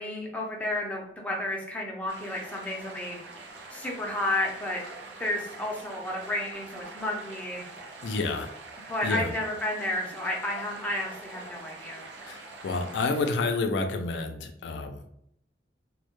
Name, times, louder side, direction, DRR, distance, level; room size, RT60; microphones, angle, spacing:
voice 1, 0.0-3.2 3.7-4.8 5.2-7.7 8.9-12.1, left 1 dB, 10° left, -2 dB, 0.4 m, -31 dB
sound 1, 2.1-13.3, right 3 dB, 85° right, 0.5 m, -44 dB
voice 2, 8.0-8.5 9.0-9.3 12.3-15.1, left 3 dB, 75° left, 5 dB, 0.3 m, -29 dB
2.1 x 2.1 x 2.9 m, 0.74 s
head